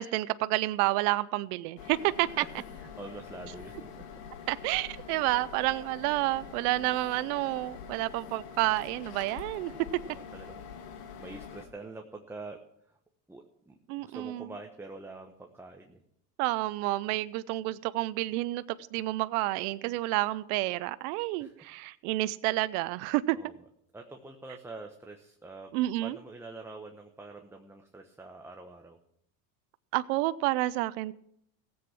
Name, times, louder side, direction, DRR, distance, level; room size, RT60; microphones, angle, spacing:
voice 1, 0.0-2.4 4.5-9.7 13.9-14.5 16.4-23.4 25.7-26.2 29.9-31.1, right 18 dB, 75° right, 0.6 m, -29 dB
sound 1, 1.8-11.7, left 7 dB, 85° left, 1.9 m, -45 dB
voice 2, 2.4-4.2 10.1-12.6 12.9-13.0 13.3-16.0 21.4-21.7 23.3-23.5 23.9-25.7 26.0-29.0, right 3 dB, 5° right, 1.1 m, -46 dB
16.5 x 7.9 x 6.0 m
supercardioid pair, 100°, 46 cm